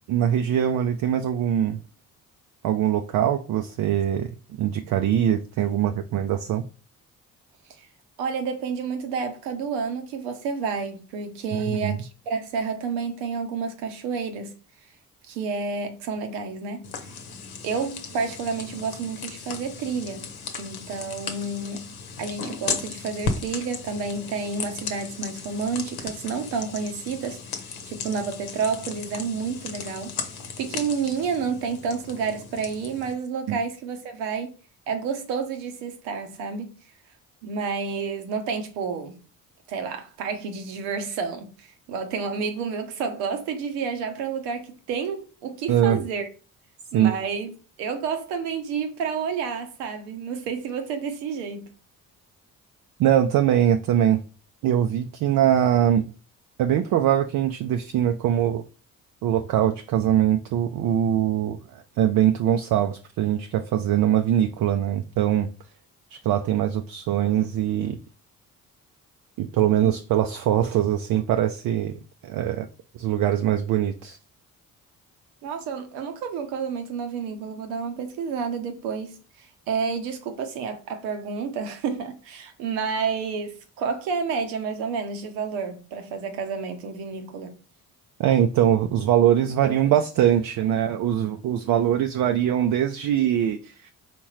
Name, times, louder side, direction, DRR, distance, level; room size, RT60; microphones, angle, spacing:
voice 1, 0.1-1.8 2.6-6.7 11.5-12.0 33.5-33.6 45.7-46.0 46.9-47.1 53.0-54.2 54.6-56.1 56.6-58.6 59.2-65.5 66.1-68.0 69.4-72.7 72.9-74.2 88.2-93.9, right 10 dB, 50° right, 0.5 m, -22 dB
voice 2, 8.2-14.5 15.3-17.1 17.6-20.2 20.5-21.9 22.2-27.4 27.9-30.1 30.6-34.6 34.9-36.7 37.4-39.2 39.7-46.3 46.9-47.5 47.8-51.7 69.8-69.9 75.4-87.5, right 5 dB, 75° right, 0.9 m, -30 dB
sound 1, 16.8-33.1, left 5 dB, 65° left, 1.0 m, -36 dB
4.3 x 3.6 x 3.1 m
hypercardioid pair, 45°, 42 cm